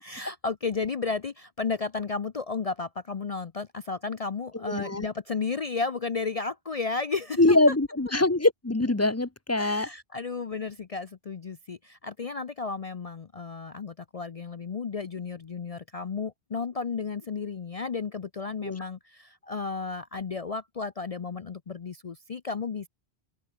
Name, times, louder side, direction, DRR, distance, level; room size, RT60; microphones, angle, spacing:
voice 1, 0.0-7.7 9.6-22.9, left 4 dB, 40° left, 0.6 m, -33 dB
voice 2, 4.7-5.1 7.4-9.9 18.6-18.7, left 2 dB, 15° left, 0.8 m, -23 dB
open air
omnidirectional pair, 1.1 m